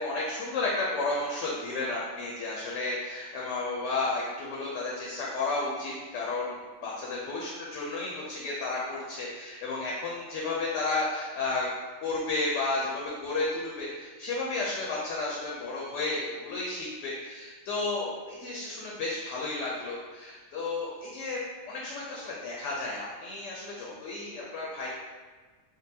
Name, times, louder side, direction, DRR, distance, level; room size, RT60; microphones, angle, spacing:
voice 1, 0.0-11.7 12.0-21.4 21.7-24.9, left 3 dB, 70° left, -4 dB, 0.9 m, -32 dB
3.8 x 2.1 x 2.6 m, 1.4 s
omnidirectional pair, 1.4 m